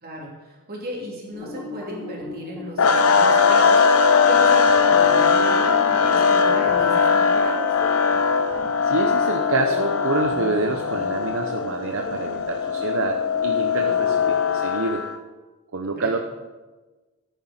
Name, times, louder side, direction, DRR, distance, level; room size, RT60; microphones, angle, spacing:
voice 1, 0.0-7.7 15.8-16.1, equal, 45° right, -2 dB, 3.1 m, -35 dB
sound 1, 1.3-14.4, equal, 5° left, 3.8 m, -38 dB
sound 2, 2.8-15.1, left 5 dB, 70° left, 0.8 m, -20 dB
voice 2, 8.8-15.0 15.7-16.2, right 3 dB, 60° right, 4 dB, 0.8 m, -27 dB
14.0 x 9.5 x 4.4 m, 1.2 s
head